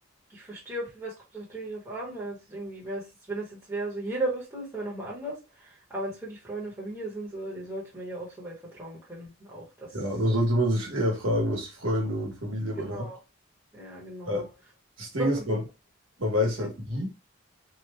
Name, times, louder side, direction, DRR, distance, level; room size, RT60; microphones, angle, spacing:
voice 1, 0.3-10.0 12.8-13.2 13.7-14.4 15.2-15.6 16.6-16.7, right 2 dB, 15° right, 1.2 m, -36 dB
voice 2, 9.9-13.0 14.3-14.5 15.0-15.6 16.2-17.1, equal, 70° right, 1.2 m, -27 dB
2.9 x 2.4 x 3.4 m
head